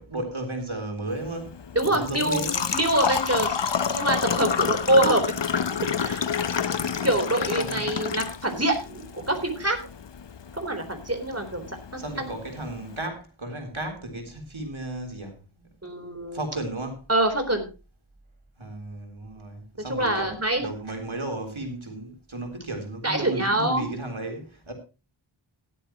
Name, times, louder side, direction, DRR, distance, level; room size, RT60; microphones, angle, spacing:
voice 1, 0.0-1.6 1.9-2.7 6.7-7.1 7.6-7.9 12.0-15.7 16.3-17.0 18.6-24.7, right 2 dB, 75° right, 3.8 m, -34 dB
Engine / Trickle dribble / Fill (with liquid), 1.1-13.1, left 7 dB, 60° left, 0.8 m, -30 dB
voice 2, 1.7-3.6 3.9-5.3 6.0-6.2 7.0-9.8 10.5-11.8 12.2-12.3 15.8-16.4 17.1-17.7 19.9-20.7 23.0-23.9, right 1 dB, 30° right, 3.9 m, -25 dB
16.5 x 12.0 x 3.0 m
wide cardioid pair, 40°, 48 cm